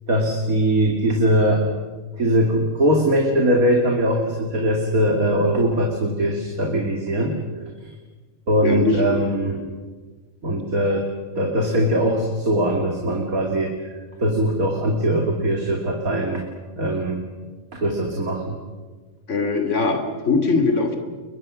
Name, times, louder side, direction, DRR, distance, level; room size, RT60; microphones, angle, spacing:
voice 1, 0.1-1.6 2.1-7.4 8.5-9.7 10.4-11.1 11.4-13.8 14.2-16.4 16.8-17.2 17.7-18.6, right 1 dB, 85° right, 1 dB, 3.0 m, -21 dB
voice 2, 8.6-9.1 10.6-10.7 19.3-21.0, left 4 dB, 55° left, 5 dB, 3.1 m, -21 dB
29.5 x 23.0 x 6.3 m, 1.4 s
omnidirectional pair, 1.5 m